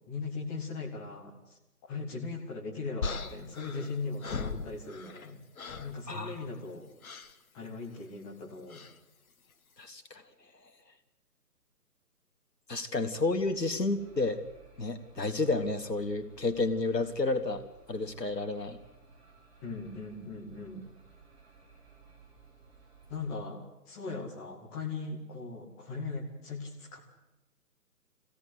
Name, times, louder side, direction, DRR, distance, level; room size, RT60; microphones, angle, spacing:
voice 1, 0.1-1.4 1.8-5.4 5.8-6.9 7.5-8.8 19.6-20.8 23.1-27.1, left 4 dB, 5° left, -4 dB, 0.8 m, -39 dB
sound 1, 3.0-5.3 5.6-6.0 7.0-7.3 8.7-9.0, left 4 dB, 60° left, 1.5 m, -38 dB
voice 2, 6.1-6.4 9.8-10.2 12.7-14.4 14.8-18.8, left 3 dB, 80° left, 6 dB, 2.3 m, -31 dB
sound 2, 13.1-23.3, right 5 dB, 40° right, 6.5 m, -58 dB
24.5 x 16.5 x 8.2 m, 0.95 s
figure-of-eight pair, 145°, 48 cm